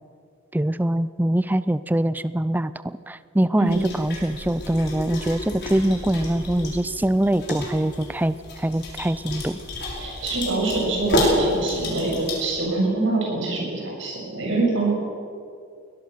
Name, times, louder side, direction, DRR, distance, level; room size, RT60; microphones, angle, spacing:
voice 1, 0.5-9.6, right 1 dB, 10° right, 15 dB, 0.4 m, -23 dB
sound 1, 3.7-12.5, left 2 dB, 55° left, 5.6 m, -30 dB
voice 2, 9.9-14.9, right 2 dB, 65° right, -1 dB, 7.6 m, -24 dB
22.5 x 18.5 x 6.8 m, 2.4 s
head